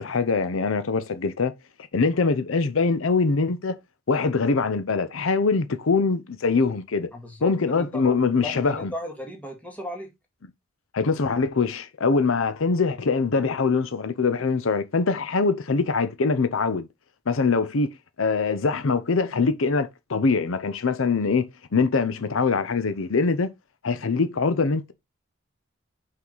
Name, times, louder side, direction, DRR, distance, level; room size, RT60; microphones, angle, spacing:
voice 1, 0.0-1.5 1.9-3.8 4.1-7.1 7.4-8.9 10.9-16.9 17.3-17.9 18.2-21.4 21.7-23.5 23.8-24.9, left 4 dB, 75° left, 0.6 m, -23 dB
voice 2, 7.1-10.1, equal, 5° left, 1.8 m, -36 dB
5.9 x 4.7 x 3.8 m
head